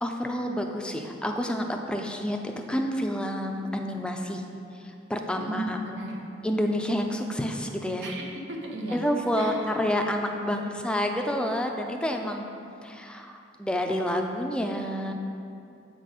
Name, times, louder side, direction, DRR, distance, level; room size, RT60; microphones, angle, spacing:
voice 1, 0.0-4.4 5.1-5.8 6.4-8.1 8.9-12.5 12.8-15.1, equal, 5° left, 3 dB, 0.4 m, -29 dB
voice 2, 5.4-6.2 8.0-9.0 9.4-9.6, right 1 dB, 75° right, 0 dB, 1.0 m, -35 dB
7.9 x 4.2 x 4.9 m, 2.5 s
head